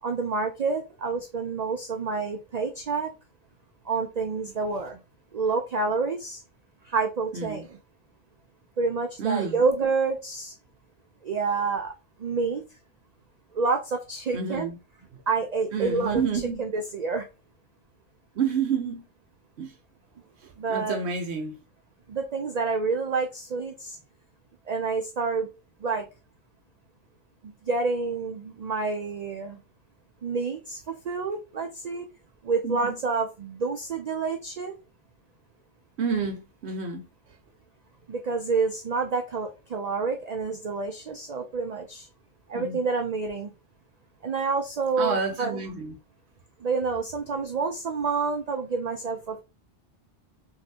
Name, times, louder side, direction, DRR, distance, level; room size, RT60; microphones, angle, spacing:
voice 1, 0.0-3.1 3.8-5.0 5.3-6.4 6.8-7.7 8.8-10.5 11.2-11.9 12.2-12.6 13.5-14.7 15.3-17.3 20.6-21.0 22.1-24.0 24.7-25.5 25.8-26.1 27.7-29.6 30.2-32.1 32.4-34.8 38.1-42.1 42.5-43.5 44.2-45.6 46.6-49.4, right 4 dB, 80° right, 0.3 m, -28 dB
voice 2, 7.3-7.7 9.2-9.6 14.3-14.8 15.7-16.6 18.4-19.0 19.6-19.7 20.4-21.6 32.6-32.9 36.0-37.1 42.5-42.8 45.0-45.9, right 5 dB, 65° right, 0.9 m, -29 dB
3.2 x 2.6 x 2.7 m
omnidirectional pair, 1.3 m